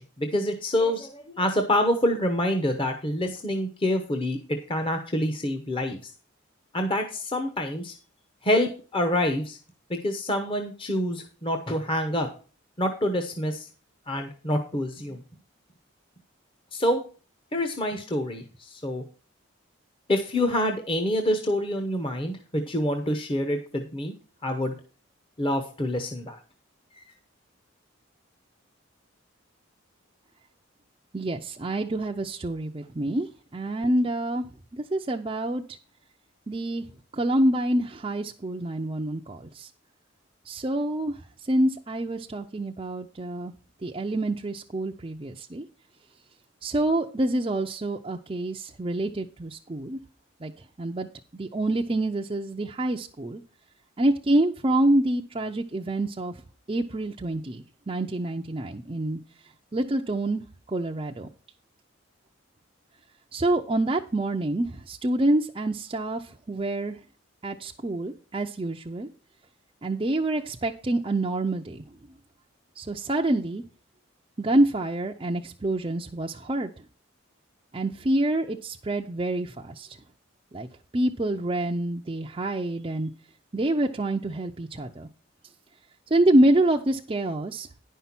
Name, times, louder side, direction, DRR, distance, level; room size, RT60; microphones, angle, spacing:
voice 1, 0.0-4.4 4.7-6.0 6.7-7.9 8.4-9.6 9.9-12.3 12.8-13.7 14.1-15.2 16.7-17.0 17.5-19.0 20.1-24.1 24.4-24.7 25.4-26.4, left 1 dB, 25° left, 6 dB, 0.9 m, -26 dB
voice 2, 31.1-34.5 34.7-35.6 36.5-36.8 37.1-39.7 40.5-41.2 41.5-43.5 43.8-45.6 46.6-50.0 50.4-50.5 50.8-51.1 51.3-53.4 54.0-56.3 56.7-59.2 59.7-60.4 60.7-61.3 63.3-67.0 67.4-69.1 69.8-71.8 72.8-73.6 74.4-76.7 77.7-79.9 80.5-80.7 80.9-83.1 83.5-85.1 86.1-87.7, right 1 dB, 25° right, 1 dB, 0.5 m, -26 dB
10.0 x 5.6 x 5.9 m, 0.38 s
head